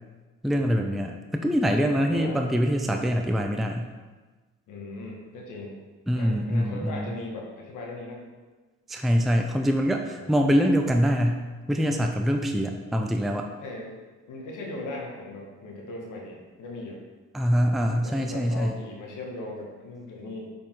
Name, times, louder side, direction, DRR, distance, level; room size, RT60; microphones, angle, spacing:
voice 1, 0.4-3.9 6.1-7.1 8.9-13.5 17.3-18.7, equal, ahead, 3 dB, 0.5 m, -24 dB
voice 2, 2.0-2.4 4.7-5.8 6.2-8.2 10.2-10.3 13.6-13.9 14.3-17.0 18.0-20.5, left 2 dB, 85° left, -1 dB, 1.6 m, -38 dB
7.4 x 5.0 x 3.7 m, 1.3 s
cardioid pair, 90°, 30 cm